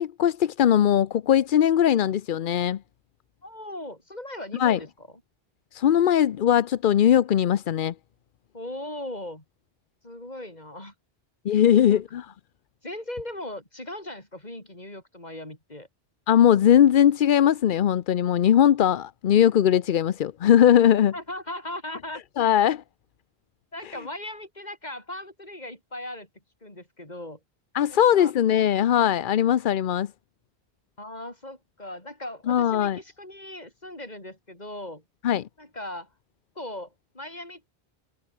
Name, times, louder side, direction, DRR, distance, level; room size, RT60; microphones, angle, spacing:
voice 1, 0.0-2.8 4.6-4.8 5.7-7.9 11.4-12.3 16.3-21.1 22.4-22.8 23.8-24.0 27.7-30.1 32.5-33.0 35.2-35.5, left 10 dB, 60° left, 0.7 m, -20 dB
voice 2, 3.4-5.1 8.5-9.4 10.0-10.9 11.7-12.0 12.8-15.9 21.1-22.2 23.7-26.3 26.6-27.4 27.9-28.3 31.0-35.0 35.6-36.1 36.6-37.7, left 1 dB, 40° left, 5.5 m, -38 dB
omnidirectional pair, 1.1 m